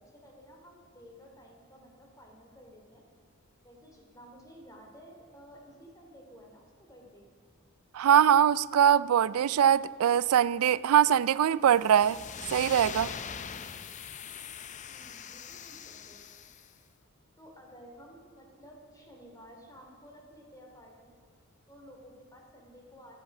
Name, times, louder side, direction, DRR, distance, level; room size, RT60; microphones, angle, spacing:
voice 1, 0.1-3.0 3.6-7.3 14.9-16.2 17.4-21.1 21.7-23.1, equal, 15° left, 0 dB, 2.9 m, -53 dB
voice 2, 7.9-12.2 12.5-13.1, right 9 dB, 90° right, 20 dB, 0.3 m, -22 dB
sound 1, 11.8-16.7, left 7 dB, 35° left, 0.5 m, -42 dB
14.5 x 12.5 x 6.0 m, 2.1 s
head